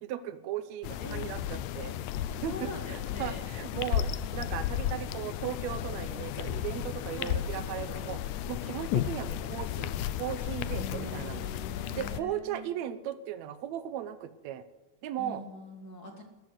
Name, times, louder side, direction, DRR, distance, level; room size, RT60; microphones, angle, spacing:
voice 1, 0.0-11.4 12.0-14.6 15.0-15.4, right 11 dB, 80° right, 13 dB, 1.6 m, -37 dB
sound 1, 0.8-12.2, left 11 dB, 80° left, 1.7 m, -34 dB
voice 2, 2.5-3.5 7.1-7.4 10.7-12.6 15.2-16.2, left 2 dB, 35° left, 3 dB, 1.7 m, -43 dB
13.5 x 11.0 x 8.1 m, 1.2 s
omnidirectional pair, 4.1 m